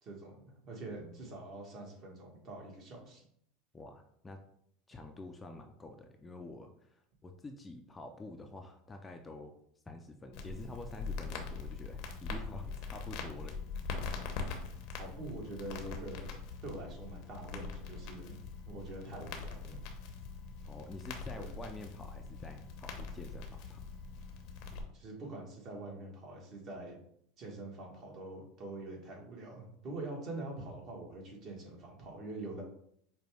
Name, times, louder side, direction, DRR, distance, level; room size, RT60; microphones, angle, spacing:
voice 1, 0.0-3.2 15.0-16.3 16.6-18.4 18.7-19.8 21.4-21.5 24.9-27.0 27.4-32.6, right 2 dB, 45° right, 0 dB, 1.4 m, -45 dB
voice 2, 3.7-4.4 4.9-9.5 9.9-13.5 20.6-23.8, left 2 dB, 15° left, 4 dB, 0.5 m, -48 dB
Crackle, 10.3-24.8, left 4 dB, 60° left, 0.8 m, -42 dB
5.1 x 2.2 x 3.4 m, 0.69 s
hypercardioid pair, 105°, 0 cm